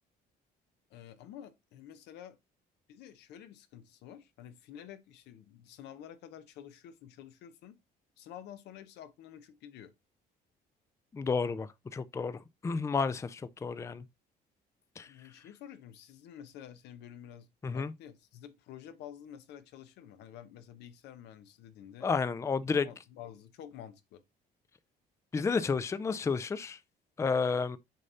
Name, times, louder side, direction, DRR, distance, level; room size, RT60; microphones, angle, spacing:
voice 1, 0.9-2.4 2.9-7.8 8.2-9.9 15.0-17.5 17.7-22.1 22.6-24.2, left 10 dB, 85° left, 0.9 m, -50 dB
voice 2, 11.1-14.0 15.0-15.1 17.6-17.9 22.0-22.9 25.3-26.8 27.2-27.8, left 5 dB, 15° left, 0.4 m, -31 dB
6.5 x 2.7 x 5.5 m
cardioid pair, 110°, 17 cm